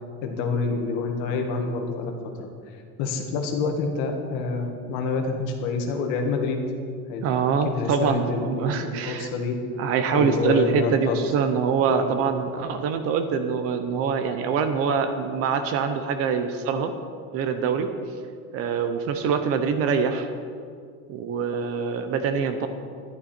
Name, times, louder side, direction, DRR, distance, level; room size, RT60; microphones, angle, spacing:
voice 1, 0.2-2.1 2.4-2.5 3.0-6.6 7.1-9.6 10.1-11.2 11.8-12.1, left 4 dB, 55° left, 4 dB, 1.7 m, -27 dB
voice 2, 7.2-9.3 9.8-16.9 17.3-17.9 18.5-20.3 21.1-22.7, right 6 dB, 40° right, 8 dB, 0.8 m, -24 dB
12.0 x 11.0 x 4.4 m, 2.2 s
cardioid pair, 175°, 37 cm